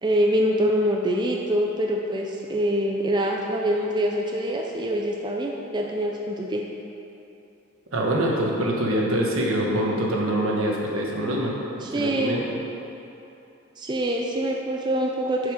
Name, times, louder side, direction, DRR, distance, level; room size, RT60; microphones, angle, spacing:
voice 1, 0.0-6.6 11.8-12.4 13.8-15.5, equal, 20° right, 0 dB, 0.4 m, -25 dB
voice 2, 7.9-11.5 11.9-12.5, right 1 dB, 80° right, -2 dB, 1.3 m, -24 dB
7.0 x 6.4 x 5.0 m, 2.9 s
head